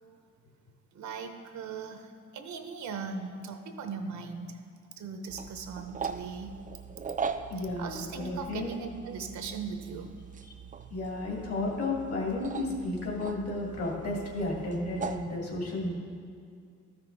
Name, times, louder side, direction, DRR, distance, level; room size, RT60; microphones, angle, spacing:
voice 1, 0.9-4.6 5.0-6.6 7.8-10.1, right 5 dB, 70° right, 6 dB, 0.9 m, -39 dB
sound 1, 5.3-15.3, right 5 dB, 25° right, 0.4 m, -40 dB
voice 2, 7.5-8.7 10.9-15.9, left 2 dB, 55° left, -1 dB, 2.4 m, -33 dB
13.0 x 6.0 x 3.3 m, 2.2 s
cardioid pair, 90°, 30 cm